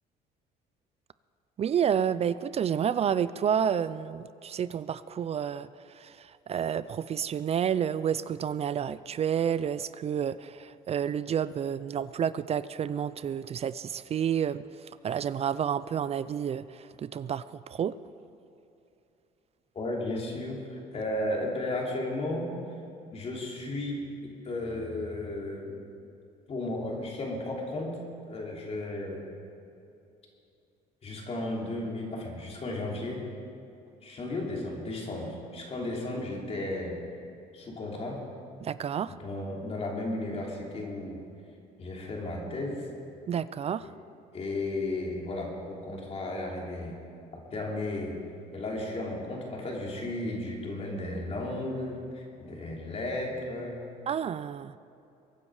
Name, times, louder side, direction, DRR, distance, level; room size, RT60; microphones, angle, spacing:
voice 1, 1.6-5.7 6.0-6.1 6.5-14.6 15.0-16.7 17.0-17.9 38.6-39.1 43.3-43.8 54.1-54.7, right 8 dB, 40° right, 16 dB, 0.4 m, -29 dB
voice 2, 19.7-22.5 23.1-25.8 26.5-27.9 28.3-29.3 31.0-33.2 34.0-37.0 37.5-38.2 39.1-41.2 41.8-42.8 43.8-43.9 44.3-46.9 47.3-48.2 48.5-53.9, left 2 dB, 40° left, -2 dB, 3.3 m, -34 dB
23.0 x 9.8 x 4.9 m, 2.7 s
cardioid pair, 110°, 17 cm